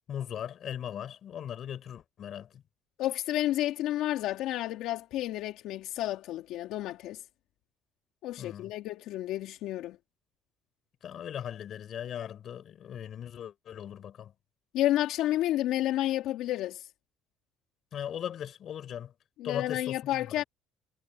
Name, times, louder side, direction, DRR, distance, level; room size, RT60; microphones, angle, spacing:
voice 1, 0.1-2.6 8.4-8.7 11.0-14.3 17.9-19.1 19.4-20.5, left 9 dB, 50° left, 5.2 m, -38 dB
voice 2, 3.0-7.2 8.2-10.0 14.7-16.9 19.4-20.4, left 14 dB, 75° left, 2.5 m, -30 dB
cardioid pair, 125°, 0 cm